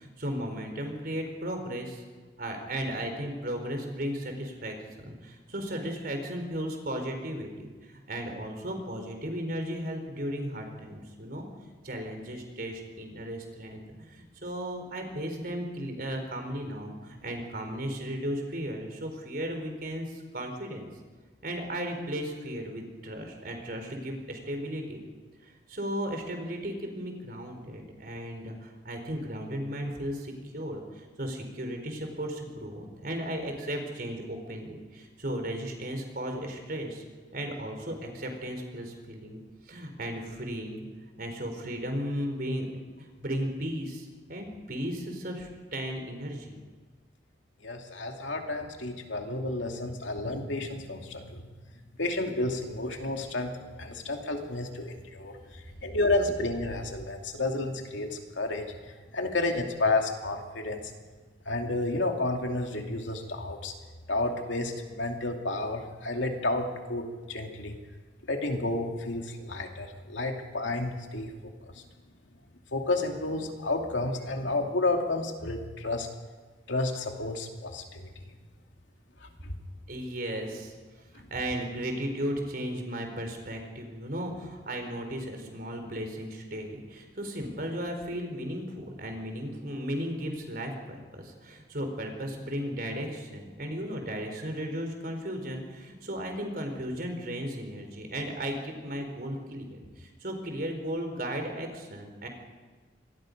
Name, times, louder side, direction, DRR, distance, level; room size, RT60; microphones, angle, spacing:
voice 1, 0.0-2.0 2.4-11.4 11.8-20.9 21.4-25.0 25.4-37.0 37.3-39.4 39.7-40.9 41.2-42.7 43.0-46.6 79.9-80.7 81.3-102.3, equal, 50° right, 4 dB, 4.0 m, -35 dB
voice 2, 47.6-51.5 52.0-60.9 61.5-63.7 64.1-67.8 68.3-71.8 72.7-76.1 76.7-78.1 79.2-79.6, left 2 dB, 80° left, 3 dB, 2.6 m, -31 dB
25.5 x 20.5 x 5.3 m, 1.4 s
head